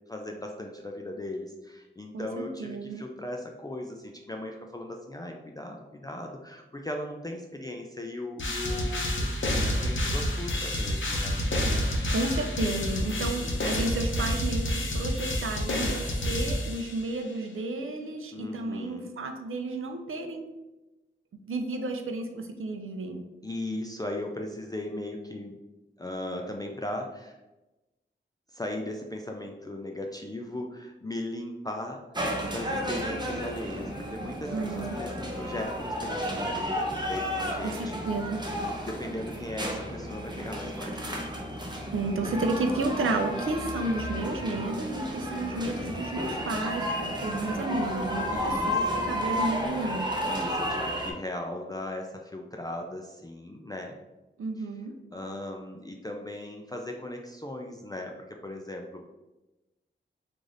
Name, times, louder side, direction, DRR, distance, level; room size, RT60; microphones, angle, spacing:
voice 1, 0.1-11.4 13.0-13.6 18.3-19.1 23.4-25.5 26.0-27.4 28.5-38.0 38.8-41.4 45.3-45.8 48.3-49.1 50.3-54.0 54.6-54.7 55.1-59.0, left 1 dB, 20° left, 1 dB, 0.4 m, -38 dB
voice 2, 2.1-3.0 12.1-20.5 21.5-23.2 34.5-35.0 37.6-38.4 41.9-46.9 47.2-50.1 54.4-54.9, right 2 dB, 90° right, 5 dB, 0.5 m, -32 dB
sound 1, 8.4-17.2, left 1 dB, 70° left, 0.7 m, -29 dB
sound 2, 32.1-51.1, equal, 20° right, 0.7 m, -32 dB
3.2 x 2.6 x 3.8 m, 1.0 s
wide cardioid pair, 60°, 21 cm